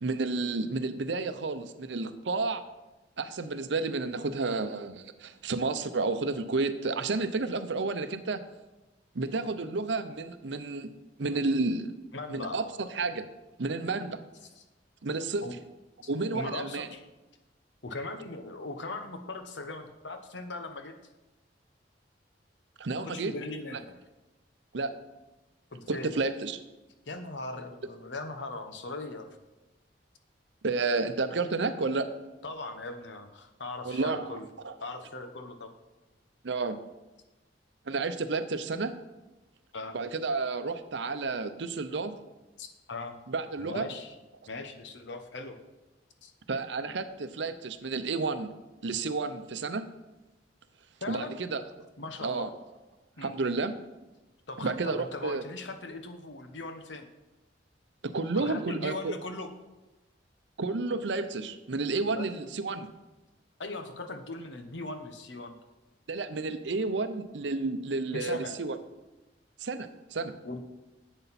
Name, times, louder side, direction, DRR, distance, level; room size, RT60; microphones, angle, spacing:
voice 1, 0.0-2.6 3.2-8.4 9.1-10.9 11.2-12.0 12.3-13.3 13.6-14.2 15.0-15.5 16.1-16.9 22.8-23.3 23.7-23.8 24.7-24.9 25.9-26.6 30.6-32.1 33.8-34.3 34.6-34.7 36.4-36.8 37.9-38.9 39.9-42.1 43.3-43.9 46.5-48.5 48.8-49.8 51.1-51.6 52.2-52.5 53.2-53.8 54.6-55.4 58.0-59.1 60.6-62.9 66.1-68.8 69.6-70.3, right 3 dB, 70° right, 11 dB, 0.7 m, -31 dB
voice 2, 12.1-12.6 15.4-15.5 16.3-17.0 17.8-20.9 22.9-23.9 25.7-26.1 27.1-29.4 32.4-34.5 34.8-35.7 39.7-40.0 42.6-43.2 43.6-44.1 44.5-45.6 46.2-46.3 51.0-51.3 52.0-52.5 53.2-53.3 54.5-57.1 58.3-59.5 62.0-62.3 63.6-65.6 68.1-68.5 70.4-70.6, left 2 dB, 75° left, 7 dB, 1.1 m, -39 dB
11.0 x 8.0 x 4.2 m, 1.1 s
head